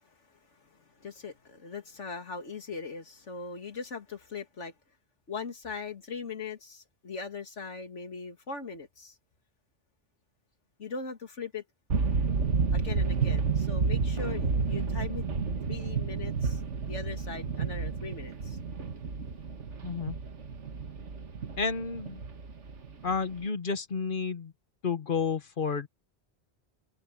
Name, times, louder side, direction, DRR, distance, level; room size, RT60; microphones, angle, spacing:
voice 1, 0.3-4.7 5.3-9.2 10.8-11.6 12.7-15.2 15.7-18.6, left 5 dB, 85° left, 2.5 m, -40 dB
sound 1, 11.9-23.4, right 5 dB, 80° right, 1.9 m, -31 dB
sound 2, 14.1-17.8, right 2 dB, 30° right, 2.8 m, -45 dB
voice 2, 19.8-20.2 21.6-22.2 23.0-24.5 24.8-25.9, left 5 dB, 50° left, 1.2 m, -31 dB
omnidirectional pair, 1.2 m